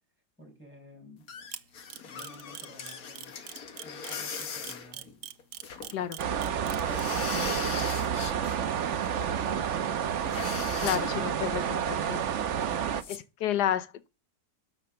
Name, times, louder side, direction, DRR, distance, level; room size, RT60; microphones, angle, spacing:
voice 1, 0.4-1.3 2.1-3.3 3.8-5.3 5.7-6.1 7.5-8.3 9.2-10.4 10.7-11.6, left 1 dB, 5° right, 5.9 m, -51 dB
sound 1, 1.3-6.1 6.4-6.5 6.8-8.6 8.9-9.2 9.7-9.8 9.9-10.0 10.3-11.2 13.0-13.2, left 6 dB, 65° left, 1.6 m, -39 dB
Camera, 1.5-7.0, right 11 dB, 80° right, 1.4 m, -41 dB
sound 2, 6.2-13.0, right 8 dB, 55° right, 1.0 m, -30 dB
voice 2, 10.8-12.2 13.1-14.1, left 10 dB, 80° left, 1.5 m, -31 dB
12.5 x 5.7 x 6.6 m
omnidirectional pair, 1.7 m